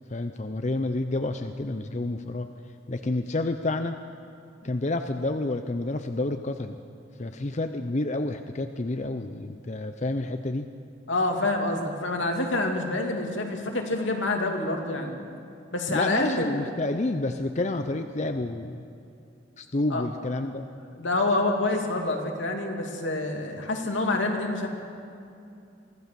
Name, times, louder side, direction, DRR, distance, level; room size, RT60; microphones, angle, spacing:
voice 1, 0.1-2.5 2.9-4.0 4.6-6.8 7.2-10.7 15.9-18.8 19.6-20.7, left 2 dB, 40° left, 7 dB, 0.6 m, -29 dB
voice 2, 11.1-15.2 15.7-16.7 19.9-20.0 20.9-24.7, left 2 dB, 80° left, 2 dB, 2.7 m, -27 dB
24.0 x 16.0 x 6.9 m, 2.6 s
head